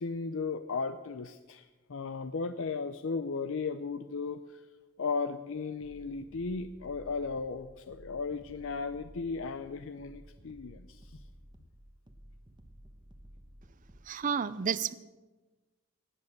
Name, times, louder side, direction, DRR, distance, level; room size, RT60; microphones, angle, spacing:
voice 1, 0.0-4.6 5.0-11.2, left 4 dB, 65° left, 10 dB, 0.5 m, -36 dB
sound 1, 5.8-14.1, equal, 20° right, 1.0 m, -54 dB
voice 2, 14.1-14.9, right 7 dB, 35° right, 16 dB, 0.4 m, -31 dB
18.0 x 8.5 x 6.5 m, 1.2 s
head